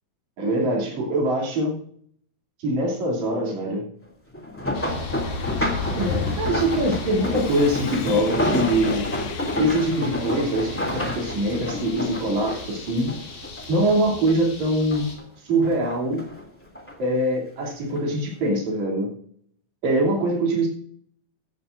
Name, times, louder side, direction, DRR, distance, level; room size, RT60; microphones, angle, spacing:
voice 1, 0.4-1.7 2.6-3.8 6.0-9.1 9.6-13.1 13.7-15.1 15.4-16.2 17.0-19.1 19.8-20.7, right 1 dB, 70° right, -2 dB, 4.3 m, -23 dB
sound 1, 4.3-13.9 14.3-15.2 15.6-17.0 17.7-18.0 18.4-18.5, left 1 dB, 5° left, 2.3 m, -29 dB
sound 2, 4.7-15.1, left 3 dB, 80° left, 4.2 m, -34 dB
Sawing, 5.8-13.3, left 8 dB, 60° left, 1.7 m, -43 dB
15.5 x 12.5 x 2.6 m, 0.64 s
omnidirectional pair, 3.4 m